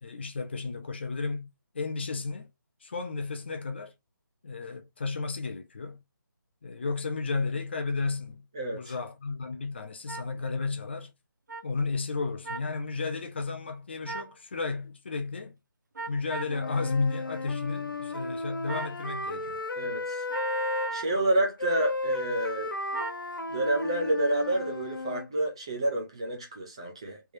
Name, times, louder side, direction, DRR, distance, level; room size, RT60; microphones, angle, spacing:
voice 1, 0.0-1.5 1.7-2.5 2.8-3.9 4.4-6.0 6.6-8.5 8.7-11.1 11.6-15.6 16.1-19.6, left 4 dB, 30° left, 0.6 m, -33 dB
voice 2, 8.5-8.9 19.8-20.3 20.9-22.7 23.5-27.2, right 1 dB, 15° right, 0.5 m, -29 dB
sound 1, 10.1-10.2 11.5-11.6 12.4-12.7 14.0-14.3 15.9-16.6 18.7-19.0 20.3-21.2 22.9-23.2, right 3 dB, 55° right, 1.0 m, -36 dB
Wind instrument woodwind instrument, 16.5-20.9 21.6-25.3, left 3 dB, 80° left, 0.9 m, -34 dB
3.4 x 3.3 x 2.6 m
figure-of-eight pair, 170°, 11 cm